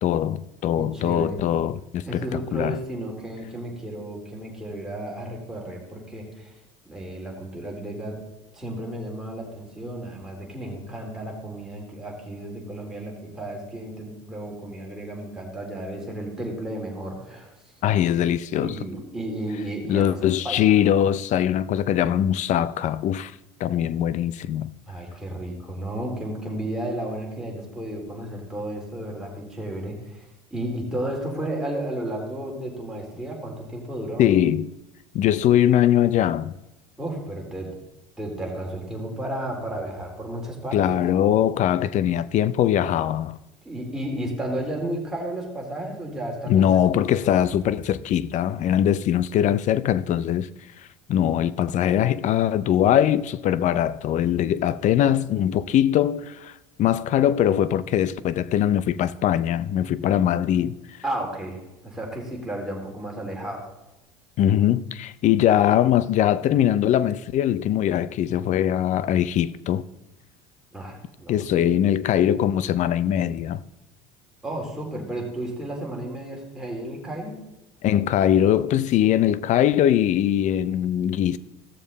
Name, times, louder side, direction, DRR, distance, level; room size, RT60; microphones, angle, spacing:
voice 1, 0.0-2.2 2.5-2.8 17.8-18.8 19.9-23.3 23.6-24.7 34.2-34.7 35.1-36.5 40.7-43.4 46.5-50.5 51.1-56.5 56.8-60.8 64.4-69.8 71.3-73.6 77.8-81.4, left 10 dB, 50° left, 0.6 m, -21 dB
voice 2, 0.8-1.4 2.1-6.5 6.9-8.2 8.5-17.5 18.5-20.6 24.9-30.3 30.5-34.3 37.0-37.7 38.2-41.0 43.6-47.5 61.0-63.7 70.7-71.4 74.4-77.4, right 1 dB, 5° right, 3.9 m, -33 dB
16.0 x 7.1 x 4.1 m
supercardioid pair, 90°, 16 cm